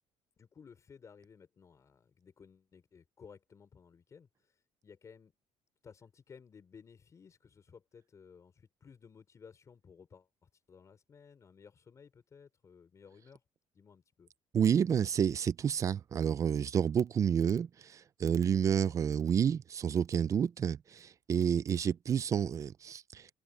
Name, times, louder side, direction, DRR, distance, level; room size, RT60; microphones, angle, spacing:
voice 1, 0.4-5.3 5.8-13.4 13.7-14.3 18.8-19.0, left 6 dB, 30° left, 5.4 m, -57 dB
voice 2, 14.5-23.3, right 8 dB, 30° right, 0.4 m, -30 dB
cardioid pair, 160°, 11 cm